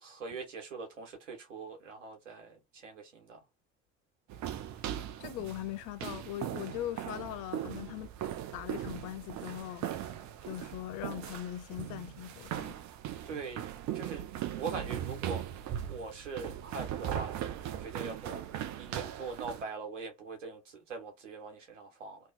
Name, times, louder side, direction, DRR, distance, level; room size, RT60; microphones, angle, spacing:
voice 1, 0.0-3.4 13.2-13.6 13.9-14.2 14.6-15.4 15.9-17.4 17.6-18.4 18.8-22.2, right 4 dB, 90° right, 1.3 m, -42 dB
sound 1, 4.3-19.6, right 11 dB, 50° right, 0.7 m, -39 dB
voice 2, 5.2-8.1 8.5-9.9 10.5-12.8, left 13 dB, 60° left, 0.6 m, -40 dB
2.8 x 2.3 x 3.9 m
hypercardioid pair, 60°, 36 cm